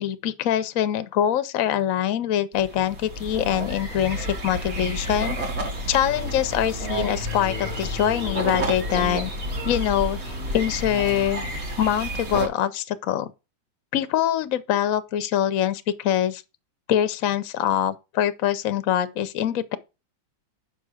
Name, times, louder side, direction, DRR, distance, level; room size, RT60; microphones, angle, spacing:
voice 1, 0.0-5.4 5.9-9.3 9.6-11.4 11.8-13.3 13.9-16.4 16.9-19.8, left 10 dB, 65° left, 0.8 m, -24 dB
sound 1, 2.5-12.5, right 1 dB, 40° right, 1.6 m, -30 dB
sound 2, 6.1-11.6, left 9 dB, 85° left, 0.5 m, -40 dB
6.7 x 5.2 x 4.9 m
omnidirectional pair, 2.1 m